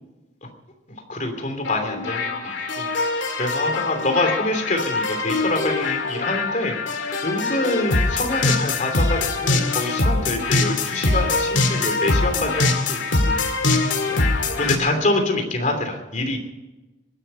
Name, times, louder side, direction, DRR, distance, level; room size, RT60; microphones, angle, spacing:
voice 1, 1.1-2.3 2.8-6.7 7.2-16.4, left 2 dB, 40° left, 5 dB, 3.0 m, -26 dB
sound 1, 1.6-14.8, left 3 dB, 80° left, 2.0 m, -23 dB
20.5 x 11.0 x 5.6 m, 1.1 s
head